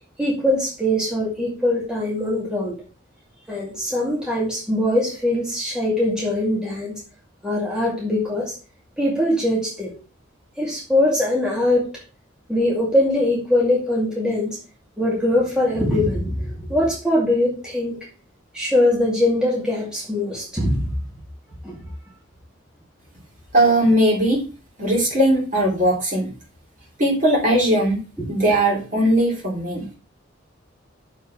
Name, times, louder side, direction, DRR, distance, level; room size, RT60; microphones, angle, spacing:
voice 1, 0.2-2.8 3.5-6.9 7.4-8.5 9.0-9.9 10.6-11.9 12.5-14.6 15.0-18.0 18.5-20.9 21.6-21.8, left 1 dB, 5° right, -5 dB, 2.4 m, -22 dB
voice 2, 23.5-24.5 24.8-26.3 27.0-28.0 28.3-29.9, right 1 dB, 40° right, -2 dB, 3.3 m, -19 dB
7.1 x 4.8 x 5.9 m, 0.34 s
head